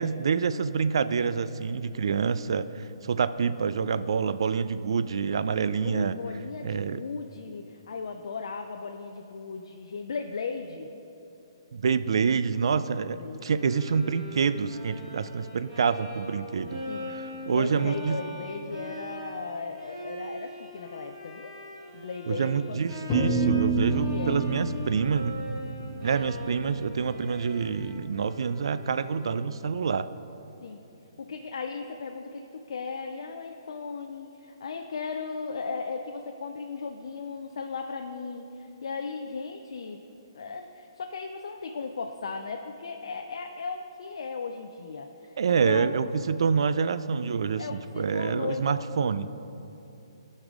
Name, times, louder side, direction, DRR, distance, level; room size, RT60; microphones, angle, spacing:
voice 1, 0.0-6.1 6.6-7.0 11.7-13.2 13.4-16.8 17.5-18.2 22.3-25.4 26.0-30.1 45.4-49.3, right 6 dB, 70° right, 13 dB, 0.4 m, -27 dB
voice 2, 5.8-10.9 13.1-13.8 16.9-21.5 21.9-23.2 23.8-24.4 30.6-30.8 31.2-40.0 40.3-46.0 47.6-49.1, left 4 dB, 70° left, 4 dB, 0.5 m, -37 dB
Bowed string instrument, 13.6-29.6, equal, 20° right, 2.0 m, -42 dB
sound 1, 23.1-27.6, right 2 dB, 20° left, 0.9 m, -29 dB
13.5 x 5.4 x 3.7 m, 2.9 s
hypercardioid pair, 150°, 3 cm